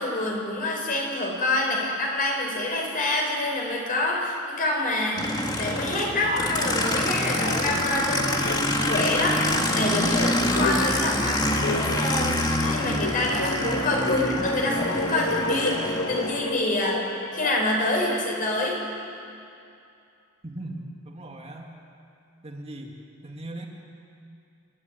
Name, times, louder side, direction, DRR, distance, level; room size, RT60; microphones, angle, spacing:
voice 1, 0.0-8.6 8.9-17.0 17.3-18.8, left 1 dB, 45° left, -1 dB, 5.0 m, -27 dB
Aircraft, 5.2-16.3, left 1 dB, 20° left, 1.8 m, -26 dB
sound 1, 6.2-8.1 8.4-17.9, left 2 dB, 70° left, 1.8 m, -32 dB
voice 2, 20.4-21.7 22.4-22.9 23.2-23.7, right 1 dB, 30° right, 0 dB, 2.1 m, -38 dB
28.5 x 12.0 x 9.1 m, 2.5 s
head